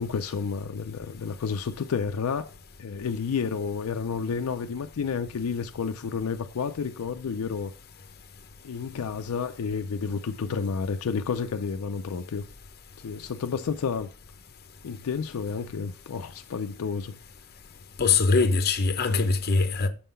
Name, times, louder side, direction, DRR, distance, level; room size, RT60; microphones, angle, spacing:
voice 1, 0.0-2.5 2.8-7.7 8.6-12.4 13.0-14.1 14.8-17.2, left 5 dB, 75° left, 0.4 m, -30 dB
voice 2, 18.0-19.9, left 4 dB, 45° left, 0.7 m, -22 dB
6.8 x 3.7 x 5.4 m
head